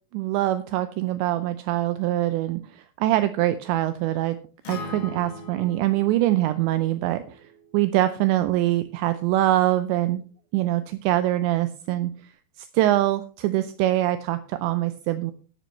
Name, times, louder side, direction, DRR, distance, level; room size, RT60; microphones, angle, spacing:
voice 1, 0.1-4.4 4.7-7.4 7.7-10.2 10.5-12.3 12.6-15.3, right 15 dB, 80° right, 11 dB, 2.8 m, -24 dB
Acoustic guitar, 4.6-8.9, left 2 dB, 55° left, 1.9 m, -42 dB
12.0 x 12.0 x 3.1 m, 0.37 s
omnidirectional pair, 5.5 m